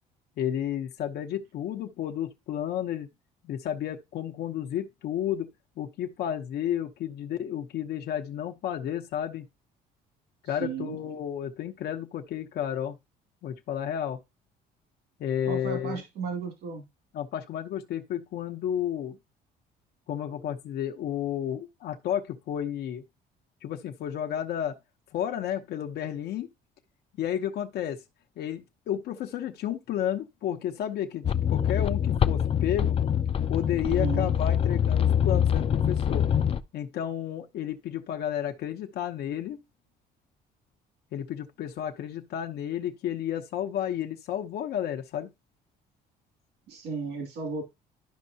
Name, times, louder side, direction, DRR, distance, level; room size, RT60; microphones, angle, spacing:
voice 1, 0.4-3.1 3.4-5.5 5.8-9.5 10.4-13.0 13.4-14.2 15.2-16.0 17.1-19.2 20.1-23.0 23.6-24.8 25.1-26.5 27.2-28.0 28.4-33.0 33.5-36.2 36.7-39.6 41.1-45.3, left 10 dB, 70° left, 0.9 m, -32 dB
voice 2, 10.4-11.0 15.5-16.8 33.8-34.3 46.7-47.6, right 5 dB, 75° right, 2.6 m, -34 dB
sound 1, 31.2-36.6, left 9 dB, 35° left, 0.5 m, -24 dB
11.5 x 5.4 x 2.8 m
cardioid pair, 110°, 17 cm